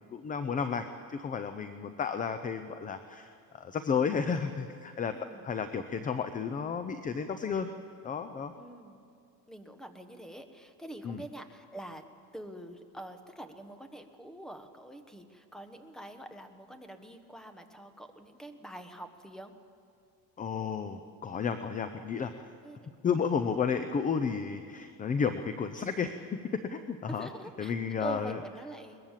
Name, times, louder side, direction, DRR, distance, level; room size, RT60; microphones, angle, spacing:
voice 1, 0.1-5.1 5.4-7.7 8.0-8.5 11.0-11.2 20.4-22.3 23.0-27.3 27.6-28.4, left 6 dB, 20° left, 9 dB, 0.6 m, -32 dB
voice 2, 5.1-5.5 8.5-9.0 9.5-12.0 12.3-19.5 22.6-22.9 27.1-27.7 28.0-29.0, right 1 dB, ahead, 8 dB, 1.1 m, -45 dB
22.0 x 20.0 x 7.4 m, 2.4 s
cardioid pair, 160°, 37 cm